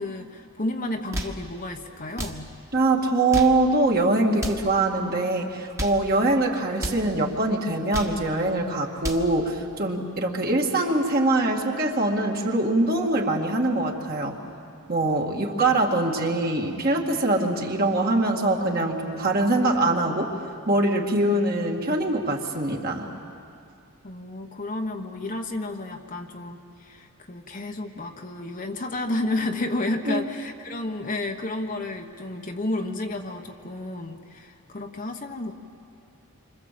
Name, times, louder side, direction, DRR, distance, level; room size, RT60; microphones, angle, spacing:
voice 1, 0.0-2.5 24.0-35.5, left 2 dB, 40° left, 3 dB, 1.2 m, -31 dB
sound 1, 0.9-1.4 2.1-2.4 3.1-3.6 4.3-4.7 5.6-6.1 6.7-7.1 7.7-8.2 8.8-9.3, right 1 dB, 15° right, 1.6 m, -33 dB
voice 2, 2.7-14.4 14.9-20.3 20.7-23.1 30.0-30.3, right 2 dB, 45° right, 0 dB, 2.2 m, -23 dB
28.0 x 25.0 x 7.7 m, 2.5 s
head